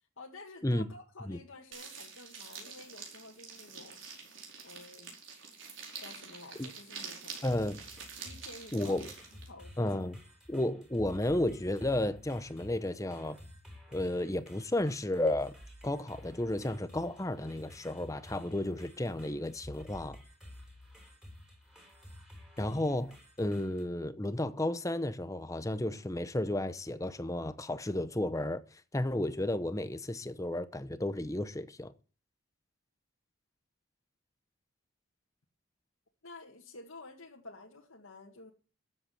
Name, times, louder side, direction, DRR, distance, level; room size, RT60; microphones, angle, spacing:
voice 1, 0.2-4.0 4.6-5.1 6.0-7.5 8.2-10.0 36.2-38.5, left 2 dB, 70° left, 1.9 m, -51 dB
sound 1, 1.7-9.5, right 5 dB, 60° right, 5.0 m, -47 dB
voice 2, 7.4-7.8 8.7-9.1 9.8-10.2 10.5-13.4 13.9-15.5 15.8-20.2 22.6-28.6 28.9-31.9, left 1 dB, 15° left, 0.7 m, -33 dB
sound 2, 7.5-23.8, left 1 dB, 5° right, 3.7 m, -52 dB
13.0 x 7.8 x 7.7 m
head